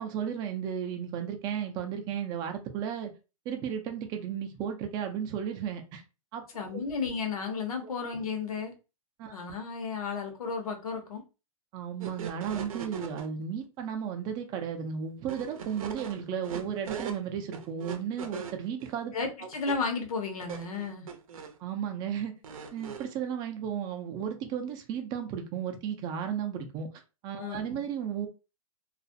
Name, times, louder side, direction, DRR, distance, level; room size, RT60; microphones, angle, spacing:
voice 1, 0.0-3.1 3.5-6.0 6.3-6.4 6.7-6.8 9.2-9.3 11.7-19.1 21.6-22.3 22.7-26.9 27.2-28.3, right 8 dB, 25° right, 0.4 m, -34 dB
voice 2, 6.5-8.7 9.3-11.2 19.1-21.1 27.4-27.8, left 5 dB, 80° left, 0.9 m, -33 dB
sound 1, 12.0-13.3 15.3-17.2 17.5-19.0 19.5-19.9 20.4-21.6 22.4-23.2, right 7 dB, 70° right, 0.6 m, -40 dB
2.4 x 2.0 x 2.6 m
hypercardioid pair, 145°, 18 cm